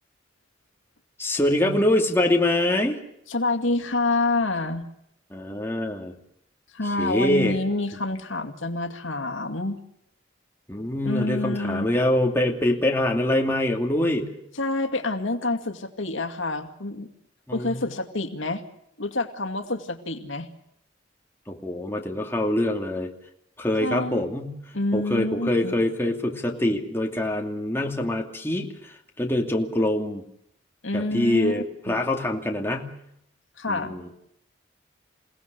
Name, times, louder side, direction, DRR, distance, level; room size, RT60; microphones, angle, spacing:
voice 1, 1.2-3.0 5.3-6.2 6.8-7.6 10.7-14.3 17.5-17.8 21.5-23.1 23.6-24.6 24.9-30.2 30.9-32.9 33.7-34.1, left 1 dB, 10° left, 1 dB, 2.6 m, -24 dB
voice 2, 3.3-4.8 6.7-9.8 11.0-11.9 14.5-17.1 17.5-18.6 19.0-20.5 23.8-24.2 24.7-25.8 30.8-32.0 33.6-34.0, left 2 dB, 80° left, 7 dB, 2.3 m, -27 dB
28.5 x 18.0 x 6.8 m, 0.76 s
head